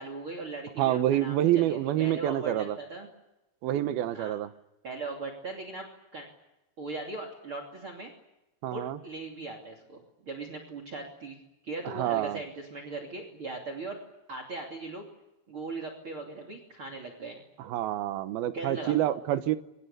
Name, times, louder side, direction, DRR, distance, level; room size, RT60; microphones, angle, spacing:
voice 1, 0.0-3.1 4.1-4.3 4.8-5.9 6.1-6.3 6.8-8.1 8.7-11.4 11.6-14.0 14.3-15.0 15.5-17.4 18.5-19.0, right 3 dB, 35° right, 5 dB, 3.3 m, -39 dB
voice 2, 0.8-2.8 3.6-4.5 8.6-9.0 11.9-12.4 17.6-19.6, right 12 dB, 80° right, 11 dB, 3.0 m, -27 dB
28.5 x 25.0 x 6.7 m, 0.95 s
omnidirectional pair, 4.3 m